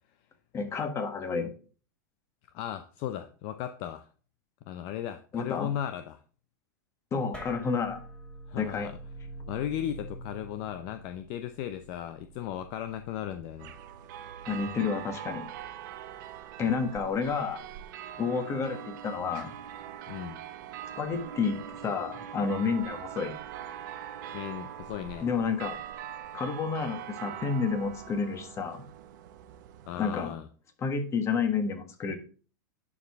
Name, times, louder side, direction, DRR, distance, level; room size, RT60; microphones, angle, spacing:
voice 1, 0.5-1.5 5.3-5.7 7.1-8.0 8.6-8.9 14.5-15.4 16.6-17.6 18.2-19.5 21.0-23.3 25.2-25.8 26.3-28.8 30.0-30.3 30.8-32.2, left 5 dB, 25° left, 6 dB, 1.5 m, -30 dB
voice 2, 2.5-4.1 4.7-6.2 8.5-9.0 9.5-13.7 20.1-20.4 24.3-25.3 29.9-30.5, left 11 dB, 50° left, 9 dB, 0.6 m, -36 dB
sound 1, 7.3-14.1, right 1 dB, 10° left, 2.3 m, -46 dB
sound 2, 13.6-30.3, right 10 dB, 65° right, 0.8 m, -42 dB
11.0 x 4.7 x 3.6 m, 0.39 s
hypercardioid pair, 125°, 11 cm